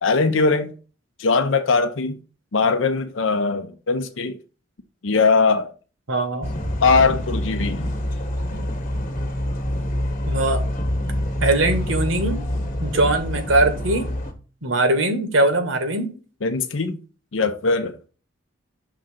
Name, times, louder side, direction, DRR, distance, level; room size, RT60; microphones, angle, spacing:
voice 1, 0.0-0.7 1.2-2.2 2.5-4.4 5.0-5.7 6.8-7.9 16.4-17.0 17.3-17.9, left 4 dB, 75° left, 0.7 m, -20 dB
voice 2, 6.1-6.5 10.3-10.6 11.4-12.4 12.8-14.1 14.6-16.1, right 2 dB, 80° right, 1.5 m, -21 dB
sound 1, 6.4-14.3, left 1 dB, 45° left, 1.2 m, -26 dB
5.7 x 3.7 x 5.7 m
head